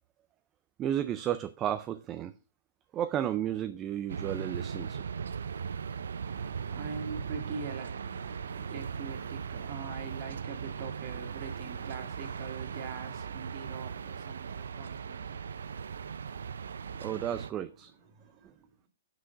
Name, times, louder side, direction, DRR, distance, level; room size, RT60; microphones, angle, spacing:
voice 1, 0.8-2.3 2.9-5.0 17.0-17.9, right 10 dB, 15° right, 0.3 m, -33 dB
sound 1, 4.1-17.5, right 6 dB, 85° right, 0.5 m, -38 dB
voice 2, 6.2-17.3 17.9-18.7, right 5 dB, 30° right, 2.0 m, -44 dB
7.7 x 6.2 x 5.6 m
hypercardioid pair, 170°, 0 cm